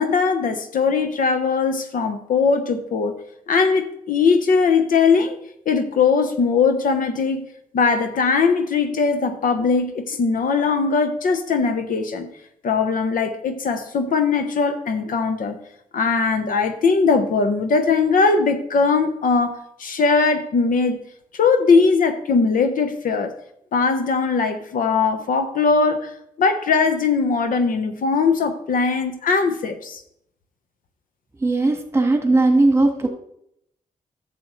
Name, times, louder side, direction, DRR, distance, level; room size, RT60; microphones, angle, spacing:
voice 1, 0.0-3.2 3.5-5.4 5.7-7.5 7.7-12.3 12.6-15.6 15.9-21.0 21.3-23.3 23.7-30.0, left 4 dB, 75° left, 7 dB, 1.0 m, -20 dB
voice 2, 31.4-33.1, right 2 dB, 20° right, 5 dB, 1.5 m, -18 dB
11.5 x 6.8 x 3.1 m, 0.73 s
cardioid pair, 85°, 14 cm